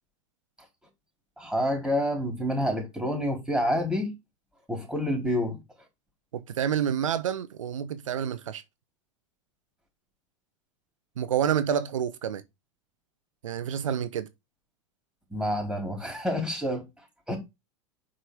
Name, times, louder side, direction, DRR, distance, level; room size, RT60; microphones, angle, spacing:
voice 1, 1.4-4.1 4.7-5.6 15.3-16.8 17.3-17.4, equal, 5° right, 4.5 m, -28 dB
voice 2, 6.3-8.6 11.2-12.4 13.4-14.3, right 9 dB, 85° right, 0.7 m, -28 dB
5.8 x 4.9 x 5.0 m
hypercardioid pair, 100°, 16 cm